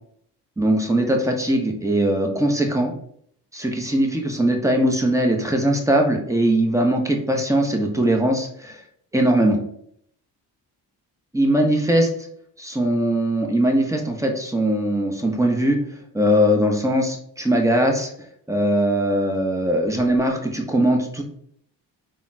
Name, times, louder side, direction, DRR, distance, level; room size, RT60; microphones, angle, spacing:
voice 1, 0.6-2.9 3.5-8.8 9.1-9.6 11.3-12.1 12.6-15.8 16.1-18.1 18.5-21.2, right 1 dB, 5° right, 2 dB, 0.6 m, -20 dB
3.8 x 2.1 x 2.6 m, 0.66 s
cardioid pair, 60°, 43 cm